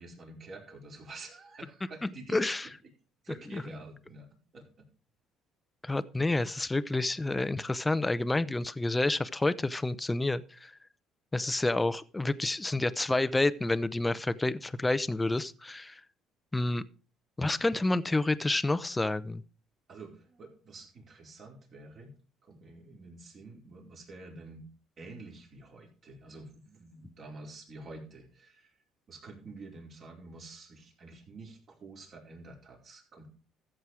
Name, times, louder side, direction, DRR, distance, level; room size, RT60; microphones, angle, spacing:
voice 1, 0.0-2.4 3.2-4.3 4.5-4.9 19.9-22.1 22.4-24.6 25.0-28.8 29.1-33.3, right 3 dB, 45° right, 0 dB, 4.7 m, -48 dB
voice 2, 2.3-2.7 3.5-3.6 5.8-10.7 11.3-16.0 16.5-16.8 17.4-19.4, left 2 dB, 10° left, 15 dB, 0.7 m, -29 dB
14.0 x 7.7 x 4.8 m, 0.36 s
cardioid pair, 120°, 0 cm